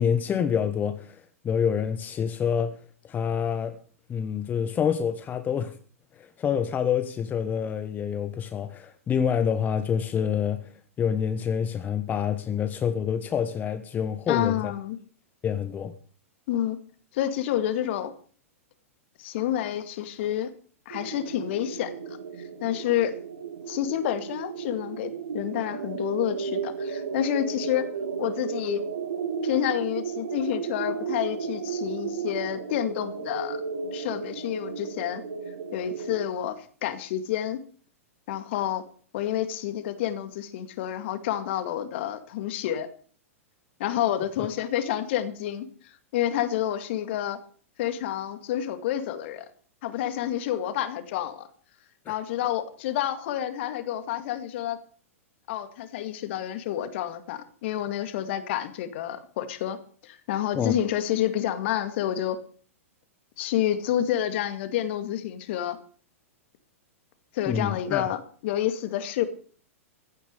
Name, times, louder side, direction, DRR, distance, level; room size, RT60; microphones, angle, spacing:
voice 1, 0.0-2.8 3.0-3.8 4.1-5.8 6.2-10.7 11.0-14.7 15.4-15.9 60.5-60.7 67.4-68.1, left 7 dB, 20° left, 1.1 m, -27 dB
voice 2, 14.3-15.0 16.5-16.8 17.1-18.1 19.2-20.5 20.9-22.2 22.6-23.1 23.7-27.9 28.2-28.8 29.4-33.6 33.9-35.2 35.7-37.6 38.3-38.8 39.1-42.9 43.8-47.4 47.8-49.4 49.8-51.5 52.1-54.8 55.5-59.8 60.0-62.4 63.4-65.8 67.3-69.3, left 11 dB, 55° left, 2.2 m, -29 dB
sound 1, 20.9-36.3, right 5 dB, 70° right, 2.4 m, -34 dB
15.0 x 10.0 x 6.8 m
figure-of-eight pair, 105°, 8 cm